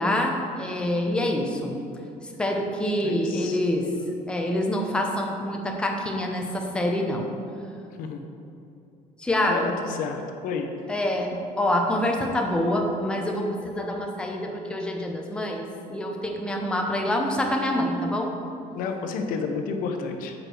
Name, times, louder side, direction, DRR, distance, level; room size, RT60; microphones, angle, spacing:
voice 1, 0.0-1.8 2.4-3.9 4.3-7.3 9.2-9.7 10.9-18.3, left 1 dB, 5° left, 1 dB, 0.7 m, -26 dB
voice 2, 3.0-3.6 8.0-8.2 9.4-10.7 18.7-20.3, left 5 dB, 75° left, 4 dB, 0.8 m, -31 dB
6.2 x 5.0 x 6.1 m, 2.7 s
cardioid pair, 135°, 15 cm